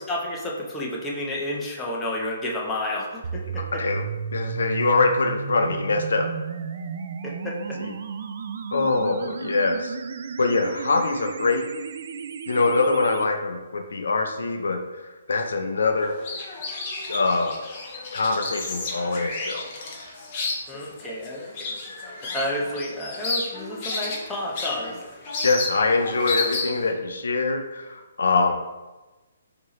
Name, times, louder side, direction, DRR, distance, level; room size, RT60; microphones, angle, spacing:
voice 1, 0.0-3.6 7.2-7.8 20.7-21.7 22.2-25.0, left 1 dB, 10° left, -4 dB, 0.8 m, -31 dB
sound 1, 3.2-13.2, right 6 dB, 55° right, 0.3 m, -33 dB
voice 2, 3.5-4.0 4.3-6.3 7.8-7.9 8.7-9.9 10.4-11.6 12.5-16.2 17.1-17.6 18.1-19.6 25.4-28.5, left 3 dB, 80° left, 4 dB, 0.5 m, -24 dB
sound 2, 16.0-26.9, left 3 dB, 35° left, 1.0 m, -32 dB
4.5 x 2.9 x 3.0 m, 1.1 s
hypercardioid pair, 145°, 0 cm